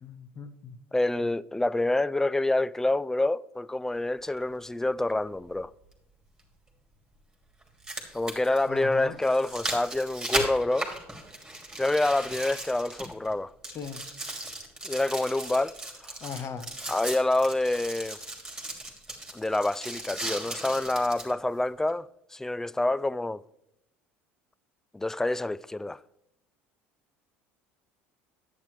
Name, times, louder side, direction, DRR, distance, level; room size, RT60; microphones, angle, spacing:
voice 1, 0.0-0.8 8.7-9.2 13.7-14.0 16.2-16.7, left 6 dB, 40° left, 1.0 m, -38 dB
voice 2, 0.9-5.7 8.1-10.9 11.8-13.5 14.8-15.7 16.0-16.1 16.9-18.2 19.3-23.4 24.9-26.0, left 2 dB, 5° left, 0.3 m, -27 dB
sound 1, 4.4-4.5 6.4-6.5 7.6-13.3 13.6-21.3 21.9-22.0, right 1 dB, 10° right, 2.8 m, -37 dB
10.0 x 9.0 x 3.2 m
hypercardioid pair, 75°, 7 cm